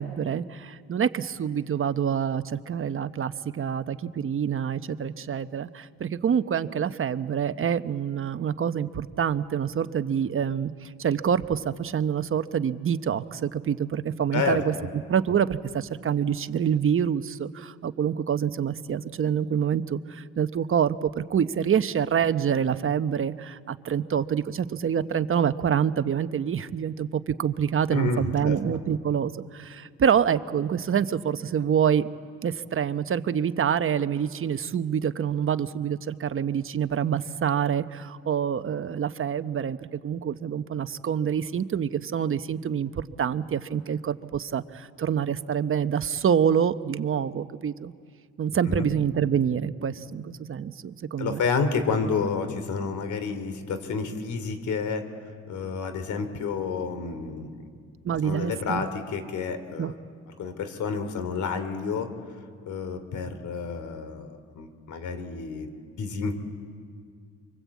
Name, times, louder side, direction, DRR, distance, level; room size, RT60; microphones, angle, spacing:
voice 1, 0.0-14.7 15.1-32.1 32.4-39.8 40.0-47.9 48.4-51.4 58.0-58.8 59.8-59.9, right 8 dB, 45° right, 11 dB, 1.0 m, -26 dB
voice 2, 14.3-14.9 27.9-28.6 48.7-48.9 51.2-55.1 55.5-57.5 58.2-60.0 60.4-62.1 62.7-65.7 66.0-66.3, left 5 dB, 75° left, 10 dB, 3.0 m, -30 dB
25.0 x 24.5 x 8.4 m, 2.1 s
cardioid pair, 90°, 30 cm